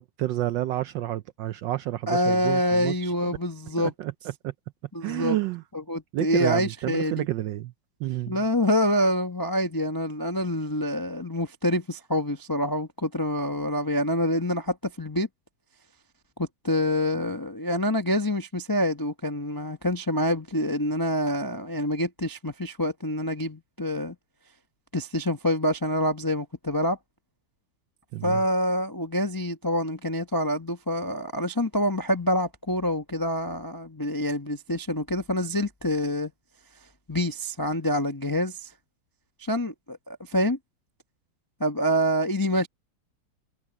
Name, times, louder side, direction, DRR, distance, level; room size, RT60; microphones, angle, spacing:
voice 1, 0.0-3.4 3.8-4.5 5.0-5.6 6.1-7.7 8.0-8.4 28.1-28.4, right 14 dB, 75° right, 1.1 m, -30 dB
voice 2, 2.1-3.9 4.9-5.4 5.9-7.2 8.3-15.3 16.4-24.2 24.9-27.0 28.2-36.3 37.1-38.7 39.4-40.6 41.6-42.7, equal, 35° left, 0.3 m, -26 dB
omnidirectional pair, 2.4 m